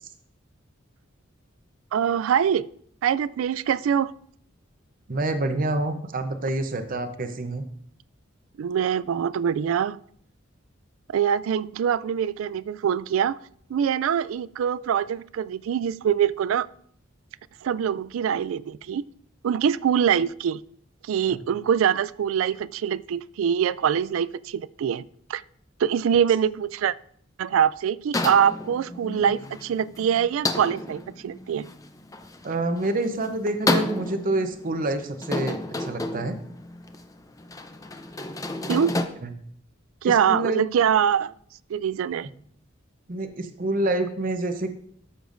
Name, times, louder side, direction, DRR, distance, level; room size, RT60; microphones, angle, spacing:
voice 1, 1.9-2.6 3.0-4.1 8.6-10.0 11.1-13.4 13.7-16.7 17.6-19.1 19.4-20.6 21.1-25.4 25.8-26.9 27.4-31.7 38.7-38.9 40.0-41.3 41.7-42.3, right 8 dB, 80° right, 19 dB, 0.3 m, -24 dB
voice 2, 5.1-7.7 21.3-21.4 32.4-36.4 39.2-39.3 40.0-40.6 43.1-44.7, right 2 dB, 45° right, 8 dB, 0.7 m, -27 dB
sound 1, 28.1-39.1, left 2 dB, 15° left, 0.5 m, -31 dB
13.0 x 6.8 x 2.6 m, 0.62 s
head